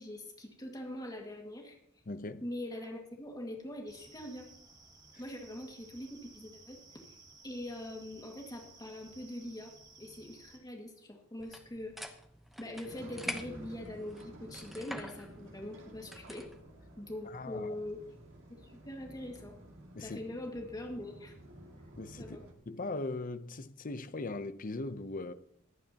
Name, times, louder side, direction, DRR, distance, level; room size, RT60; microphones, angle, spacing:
voice 1, 0.0-2.0 2.4-4.5 5.2-6.8 7.1-7.2 7.4-9.7 10.0-12.0 12.6-16.5 17.0-18.0 18.6-19.6 20.0-21.4 22.2-22.4, left 1 dB, 20° left, 2.0 m, -43 dB
voice 2, 2.1-2.4 17.3-17.8 19.9-20.2 21.9-22.4 22.7-25.3, left 2 dB, 45° left, 0.7 m, -39 dB
sound 1, 3.9-10.6, right 3 dB, 20° right, 1.4 m, -57 dB
sound 2, 11.4-16.6, equal, ahead, 0.9 m, -46 dB
sound 3, 12.8-22.5, right 1 dB, 65° right, 2.3 m, -52 dB
22.0 x 9.2 x 2.9 m
head